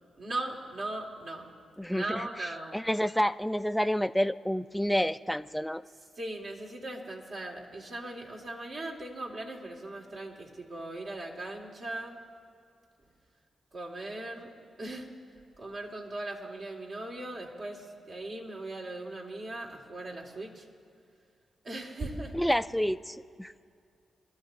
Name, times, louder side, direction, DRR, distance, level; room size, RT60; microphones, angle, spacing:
voice 1, 0.2-1.5 1.9-2.8 6.2-12.2 13.7-14.5 14.8-15.1 15.6-20.7 21.6-22.3, right 2 dB, 65° right, -2 dB, 2.0 m, -39 dB
voice 2, 1.8-2.3 2.7-5.8 22.3-23.5, equal, 5° left, 11 dB, 0.3 m, -29 dB
24.0 x 12.5 x 2.7 m, 2.3 s
supercardioid pair, 45°, 0 cm